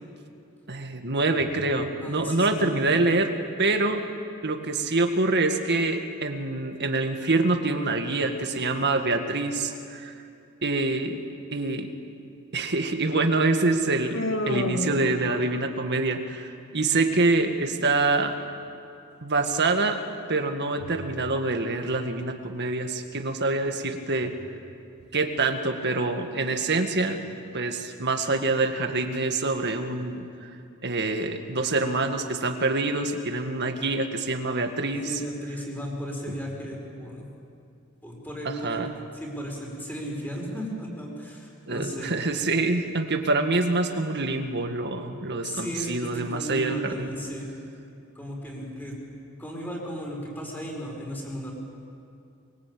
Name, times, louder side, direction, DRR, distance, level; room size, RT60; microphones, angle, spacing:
voice 1, 0.7-4.0 4.4-10.1 10.6-11.2 11.5-11.9 12.5-18.3 19.2-20.0 20.3-24.3 25.1-27.2 27.5-30.3 30.8-35.1 38.5-38.9 41.7-47.2, right 3 dB, 55° right, 5 dB, 2.0 m, -26 dB
voice 2, 2.0-3.0 14.6-14.7 35.1-37.3 38.0-38.9 39.1-42.1 45.4-47.5 48.2-49.0 49.4-51.5, equal, 10° left, -1 dB, 5.7 m, -35 dB
Human voice, 14.1-15.8, left 1 dB, 65° left, 2.5 m, -30 dB
23.5 x 23.0 x 8.7 m, 2.5 s
head